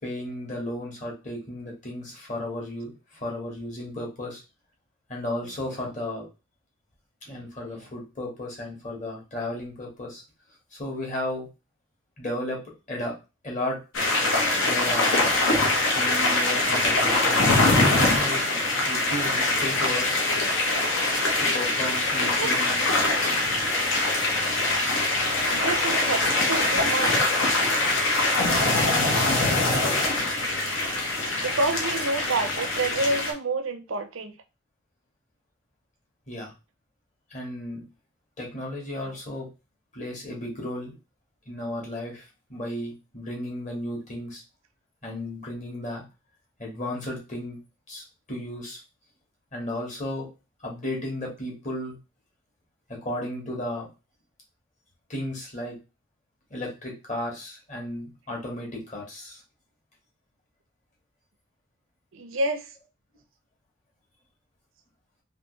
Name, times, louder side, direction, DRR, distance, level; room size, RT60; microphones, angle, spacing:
voice 1, 0.0-4.4 5.1-6.3 7.3-10.2 10.7-11.5 12.2-12.6 12.9-13.1 13.4-13.8 14.6-15.2 15.9-18.4 18.9-20.2 21.4-22.8 23.4-23.6 36.3-36.5 37.3-37.8 38.4-39.5 39.9-40.9 41.5-44.4 45.0-46.0 46.6-47.6 47.9-48.8 49.5-50.3 50.6-52.0 52.9-53.9 55.1-55.8 56.5-59.4, left 1 dB, 35° left, 1.3 m, -34 dB
voice 2, 7.3-7.9 22.2-22.5 25.5-27.3 31.4-34.4 39.0-39.2 62.1-62.7, right 2 dB, 75° right, 0.6 m, -29 dB
sound 1, 13.9-33.3, left 2 dB, 70° left, 1.0 m, -23 dB
3.3 x 2.9 x 3.1 m
head